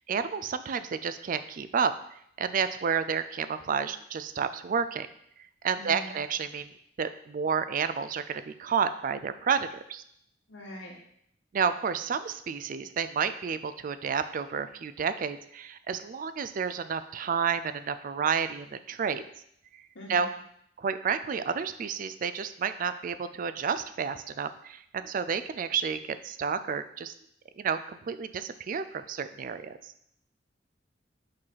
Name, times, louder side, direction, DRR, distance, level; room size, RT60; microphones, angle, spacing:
voice 1, 0.1-1.9 2.4-5.1 5.6-6.7 7.0-10.0 11.5-19.2 20.1-20.3 20.8-27.1 27.6-29.9, right 6 dB, 45° right, 12 dB, 0.4 m, -30 dB
voice 2, 5.8-6.2 10.5-10.9 20.0-20.4, equal, 85° left, -2 dB, 1.9 m, -43 dB
5.3 x 4.0 x 5.6 m, 0.71 s
head